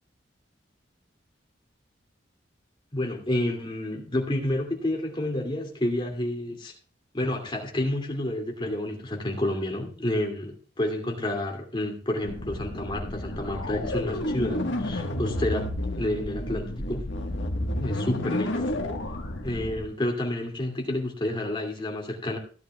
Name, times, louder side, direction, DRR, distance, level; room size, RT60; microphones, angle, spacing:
voice 1, 2.9-6.7 7.1-17.1 17.8-18.7 19.4-22.4, left 1 dB, 25° left, 1 dB, 2.6 m, -29 dB
sound 1, 12.2-19.8, left 1 dB, 85° left, 1.4 m, -31 dB
16.0 x 11.0 x 2.3 m, 0.41 s
head